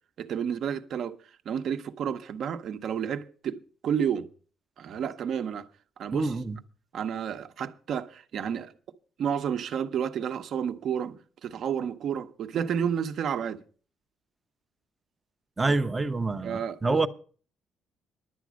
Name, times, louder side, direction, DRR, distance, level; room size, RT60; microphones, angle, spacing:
voice 1, 0.2-1.2 1.5-4.3 4.8-5.7 6.0-6.3 6.9-8.7 9.2-13.6 15.7-15.8 16.4-17.1, right 8 dB, 50° right, 0.9 m, -31 dB
voice 2, 6.1-6.6 15.6-17.1, right 3 dB, 15° right, 0.6 m, -27 dB
11.0 x 8.3 x 6.2 m
cardioid pair, 170°, 0 cm